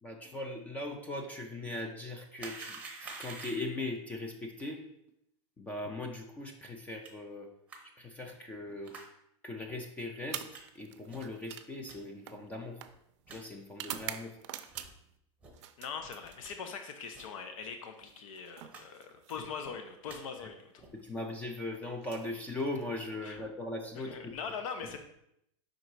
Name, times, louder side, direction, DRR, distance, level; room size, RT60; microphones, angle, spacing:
voice 1, 0.0-4.9 5.6-7.5 7.8-9.0 9.4-12.8 13.3-14.4 19.4-19.5 20.4-20.5 20.9-24.4 24.9-25.0, left 2 dB, 10° left, 3 dB, 0.3 m, -39 dB
sound 1, 2.4-3.8 7.0-7.1 7.7-7.8 8.8-9.1 9.6-9.8 10.5-10.6 11.1-11.3 11.9-12.0 12.5-12.6 12.9-13.0 13.3-13.4 13.9-14.1 14.7-14.9 15.4-15.5 16.0-16.5 17.1-17.3 17.6-17.7 18.0-18.2 18.7-18.8 19.1-19.5 19.9-20.2 20.8-21.0, right 4 dB, 10° right, 0.7 m, -48 dB
sound 2, 10.2-15.2 15.5-16.8 18.0-19.8 20.9-21.2 21.9-23.1, right 12 dB, 60° right, 0.5 m, -46 dB
voice 2, 15.8-20.7 23.2-23.4 24.1-25.0, left 6 dB, 80° left, 6 dB, 0.7 m, -41 dB
5.4 x 3.9 x 4.6 m, 0.77 s
supercardioid pair, 175°, 17 cm